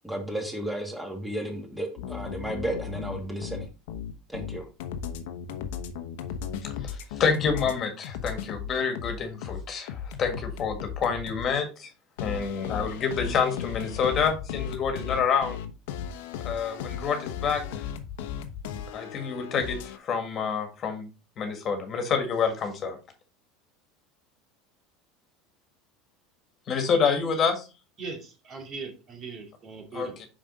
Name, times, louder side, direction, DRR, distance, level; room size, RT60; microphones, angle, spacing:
voice 1, 0.0-3.7 4.3-4.7, right 1 dB, 5° right, 2 dB, 2.3 m, -33 dB
sound 1, 2.0-7.7 8.0-11.5 12.2-20.0, left 8 dB, 75° left, 0.9 m, -36 dB
voice 2, 6.8-11.9 12.2-15.6 16.4-17.6 18.9-21.1 21.4-23.0 26.7-27.7 29.9-30.3, left 6 dB, 40° left, 5 dB, 1.8 m, -28 dB
voice 3, 28.0-30.2, right 4 dB, 40° right, 2 dB, 2.6 m, -39 dB
6.0 x 5.0 x 4.0 m, 0.31 s
hypercardioid pair, 95°, 0 cm